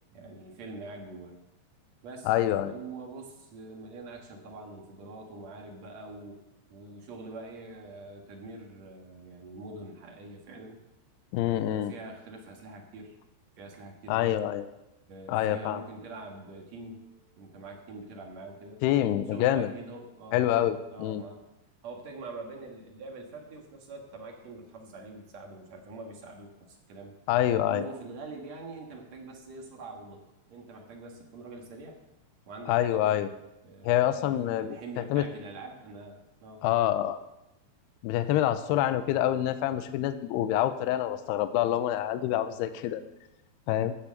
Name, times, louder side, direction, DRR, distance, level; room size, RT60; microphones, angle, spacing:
voice 1, 0.1-1.4 2.0-2.3 2.6-6.4 6.7-10.8 11.4-13.2 13.6-14.4 15.1-18.8 19.3-20.5 20.9-21.5 21.8-27.2 27.6-30.2 30.5-32.0 32.5-33.2 33.6-36.6, right 3 dB, 55° right, 1 dB, 2.1 m, -44 dB
voice 2, 2.3-2.7 11.3-11.9 14.1-14.6 15.3-15.8 18.8-19.7 20.3-21.2 27.3-27.9 32.7-33.3 33.8-34.8 35.1-35.2 36.6-37.2 38.0-43.0 43.7-43.9, left 12 dB, 85° left, 11 dB, 2.5 m, -26 dB
14.5 x 7.0 x 6.5 m, 0.90 s
omnidirectional pair, 5.1 m